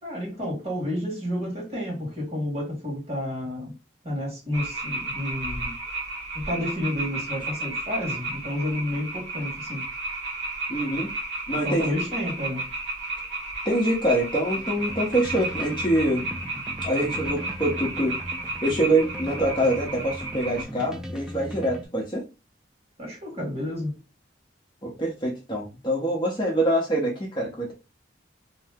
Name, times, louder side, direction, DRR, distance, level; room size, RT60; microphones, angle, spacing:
voice 1, 0.0-3.7 4.0-5.8 6.3-9.9 11.5-12.7 23.0-24.0, left 1 dB, 35° right, 1.4 m, -30 dB
sound 1, 4.5-20.6, right 2 dB, 65° right, 0.9 m, -33 dB
voice 2, 10.7-11.1 11.5-12.0 13.6-16.4 16.8-18.2 18.6-22.2 24.8-27.7, right 1 dB, 25° left, 0.6 m, -25 dB
sound 2, 14.6-21.9, equal, 5° right, 0.3 m, -38 dB
2.7 x 2.0 x 3.4 m
head